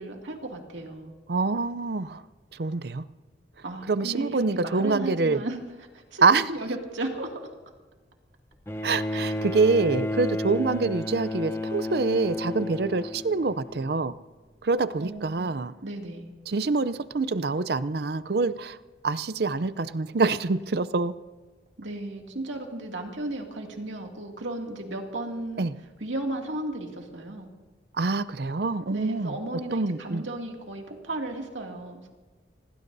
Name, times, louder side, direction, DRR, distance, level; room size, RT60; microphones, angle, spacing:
voice 1, 0.0-1.1 3.6-5.6 5.9-7.5 9.1-9.3 15.0-15.5 15.8-16.3 21.8-25.7 26.0-27.5 28.9-32.1, right 1 dB, 90° right, 1 dB, 2.4 m, -35 dB
voice 2, 1.3-2.2 2.5-3.1 3.9-5.4 6.2-6.5 8.8-14.2 14.6-15.7 16.5-18.8 19.0-21.1 25.6-25.7 27.9-29.4 29.7-30.2, right 3 dB, 55° right, 16 dB, 0.5 m, -25 dB
Bowed string instrument, 8.7-14.1 15.2-15.3, left 1 dB, 15° left, 0.6 m, -32 dB
26.5 x 18.5 x 2.7 m, 1.4 s
head